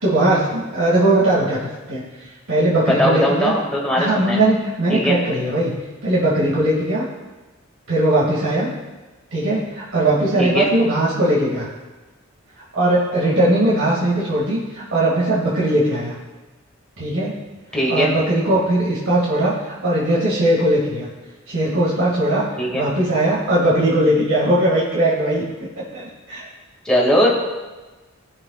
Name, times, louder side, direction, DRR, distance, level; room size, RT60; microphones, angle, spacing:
voice 1, 0.0-3.5 4.0-7.1 7.9-8.7 9.3-11.7 12.7-16.2 17.0-17.4 17.9-21.1 21.5-22.4 22.7-25.4 25.9-26.4, right 1 dB, 85° right, -7 dB, 2.4 m, -19 dB
voice 2, 2.8-4.4 4.9-5.2 10.4-10.7 17.7-18.1 22.6-22.8 26.8-27.4, equal, 5° left, -4 dB, 2.2 m, -19 dB
17.0 x 7.3 x 2.5 m, 1.2 s
head